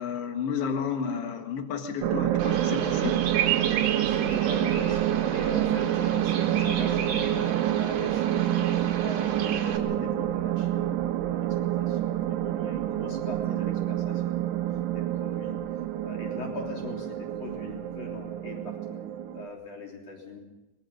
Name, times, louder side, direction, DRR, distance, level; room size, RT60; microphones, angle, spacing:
voice 1, 0.0-3.3, left 7 dB, 85° left, 5 dB, 1.3 m, -31 dB
sound 1, 2.0-19.5, right 12 dB, 75° right, 2.9 m, -27 dB
Bird vocalization bird call bird song, 2.4-9.8, right 9 dB, 60° right, 2.8 m, -33 dB
voice 2, 4.0-10.9 11.2-11.5 11.8-14.6 14.9-15.5 16.0-19.0 19.3-20.4, left 3 dB, 35° left, 0 dB, 4.1 m, -41 dB
24.0 x 20.5 x 5.5 m, 0.99 s
omnidirectional pair, 5.3 m